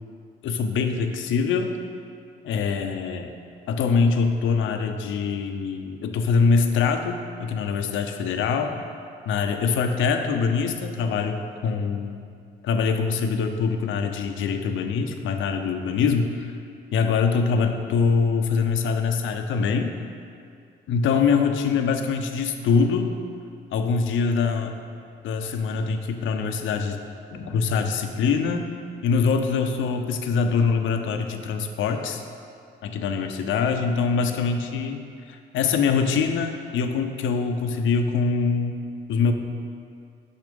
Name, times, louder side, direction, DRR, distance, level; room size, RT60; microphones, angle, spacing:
voice 1, 0.4-1.7 2.4-3.3 3.7-8.8 9.3-12.2 12.6-16.5 16.9-20.0 20.9-23.1 23.7-24.7 25.2-27.0 27.3-28.8 29.0-32.2 32.8-38.8 39.1-39.3, left 5 dB, 80° left, 6 dB, 0.7 m, -24 dB
6.4 x 5.8 x 5.2 m, 2.4 s
cardioid pair, 90°, 20 cm